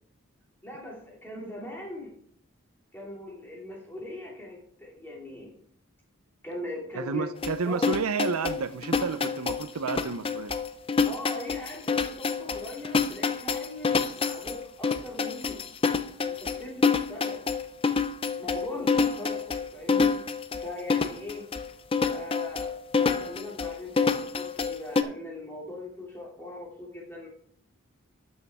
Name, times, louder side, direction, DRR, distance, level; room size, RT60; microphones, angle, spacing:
voice 1, 0.6-2.1 2.9-5.5 6.4-7.3 7.6-7.8 11.0-15.6 16.2-17.5 18.4-20.1 20.6-21.5 22.1-27.3, left 1 dB, 10° left, 2.7 m, -40 dB
voice 2, 6.9-10.6, right 5 dB, 85° right, 0.6 m, -30 dB
sound 1, 7.4-25.0, left 5 dB, 25° left, 0.4 m, -27 dB
12.0 x 6.3 x 3.6 m
head